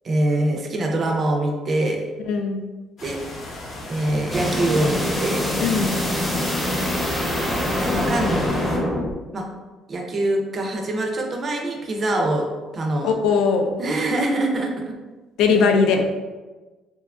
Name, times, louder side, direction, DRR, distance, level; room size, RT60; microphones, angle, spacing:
voice 1, 0.0-2.0 3.0-3.2 3.9-5.5 7.8-8.5 9.3-9.4 9.9-12.5 12.7-13.1 13.8-14.9, right 1 dB, 40° right, 2 dB, 0.4 m, -24 dB
voice 2, 2.3-2.7 5.6-6.0 13.0-13.8 15.4-16.0, left 5 dB, 80° left, 4 dB, 0.3 m, -19 dB
sound 1, 3.0-8.8, left 2 dB, 55° left, 0.7 m, -36 dB
sound 2, 4.3-9.1, left 1 dB, 10° left, 0.6 m, -24 dB
2.7 x 2.2 x 2.4 m, 1.2 s
cardioid pair, 110°, 0 cm